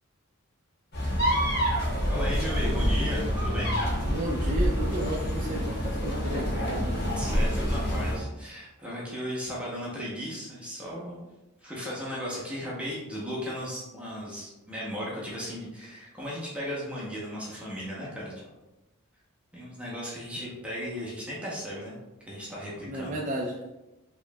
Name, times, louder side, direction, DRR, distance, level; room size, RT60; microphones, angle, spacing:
sound 1, 0.9-8.2, equal, 50° left, 1.2 m, -27 dB
voice 1, 2.1-3.7 7.0-11.2 11.6-18.5 19.5-22.0 22.3-23.2, equal, 5° right, -6 dB, 0.9 m, -36 dB
voice 2, 4.1-6.5 20.4-20.5 22.9-23.6, right 1 dB, 35° right, -2 dB, 0.5 m, -33 dB
4.6 x 3.0 x 2.3 m, 1.0 s
head